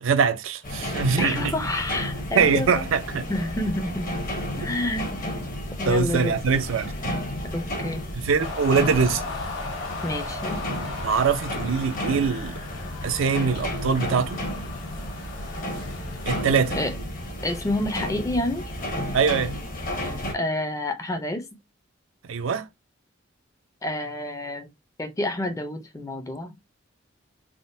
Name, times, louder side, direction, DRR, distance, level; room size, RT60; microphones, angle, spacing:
voice 1, 0.0-1.5 2.4-3.3 5.9-7.1 8.2-9.2 11.0-12.6 13.0-14.4 16.3-16.8 19.1-19.5 22.3-22.7, right 5 dB, 85° right, 0.5 m, -23 dB
sound 1, 0.6-20.3, left 1 dB, 45° left, 0.8 m, -32 dB
voice 2, 1.2-2.9 3.3-4.1 4.6-5.2 5.8-6.3 7.4-8.0 10.0-10.7 16.7-16.9 17.4-18.6 20.0-21.5 23.8-24.7 25.0-26.5, left 1 dB, 15° left, 0.4 m, -29 dB
sound 2, 8.4-16.9, left 3 dB, 80° left, 1.1 m, -37 dB
3.6 x 2.1 x 2.6 m
head